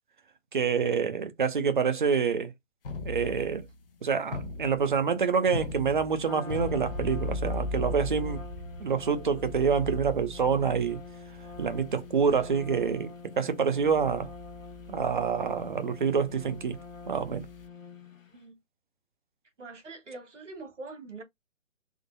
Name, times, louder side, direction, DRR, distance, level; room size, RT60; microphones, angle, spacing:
voice 1, 0.5-2.5 3.0-3.6 4.0-8.4 8.8-11.0 11.6-14.3 14.9-16.8 17.1-17.5, right 6 dB, 40° right, 0.6 m, -27 dB
sound 1, 2.8-3.7 4.3-4.9 5.5-13.0 13.8-17.7, left 3 dB, 45° left, 0.5 m, -38 dB
Trumpet, 6.2-18.4, left 4 dB, 85° left, 1.0 m, -46 dB
voice 2, 19.6-21.2, right 3 dB, 65° right, 1.8 m, -43 dB
3.7 x 2.6 x 2.5 m
figure-of-eight pair, 150°, 39 cm